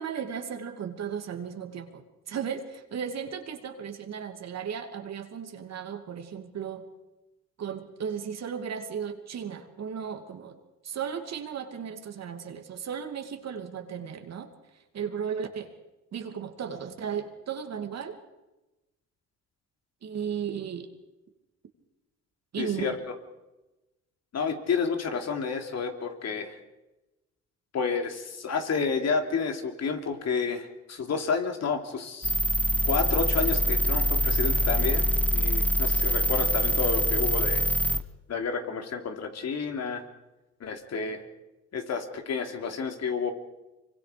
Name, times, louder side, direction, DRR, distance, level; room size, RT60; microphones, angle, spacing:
voice 1, 0.0-6.9 7.6-10.6 10.8-14.5 14.9-15.7 16.1-18.2 20.0-20.9 22.5-23.0, right 7 dB, 60° right, 6 dB, 2.7 m, -35 dB
voice 2, 22.6-23.0 24.3-26.5 27.7-32.3 32.8-35.0 35.3-37.6 38.3-40.0 40.6-41.2 41.7-43.3, left 5 dB, 60° left, 4 dB, 3.2 m, -30 dB
sound 1, 32.2-38.0, equal, 5° left, 1.5 m, -24 dB
25.0 x 24.0 x 5.2 m, 1.0 s
cardioid pair, 90°, 30 cm